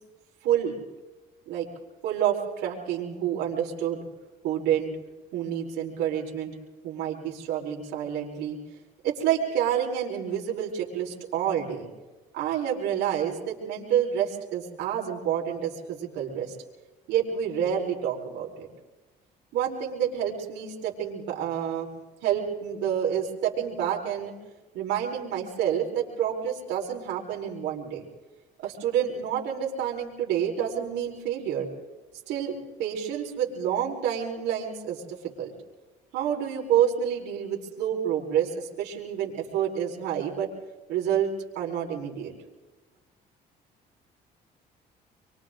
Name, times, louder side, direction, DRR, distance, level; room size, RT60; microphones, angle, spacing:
voice 1, 0.4-0.8 1.5-1.7 2.0-4.0 4.4-4.9 5.3-6.5 6.8-8.6 9.0-11.9 12.3-16.5 17.1-18.7 19.5-21.9 22.2-24.3 24.7-28.0 28.6-31.7 32.3-35.5 36.1-40.5 40.9-42.3, right 9 dB, 85° right, -1 dB, 4.8 m, -28 dB
28.5 x 24.0 x 3.9 m, 1.2 s
cardioid pair, 110°, 17 cm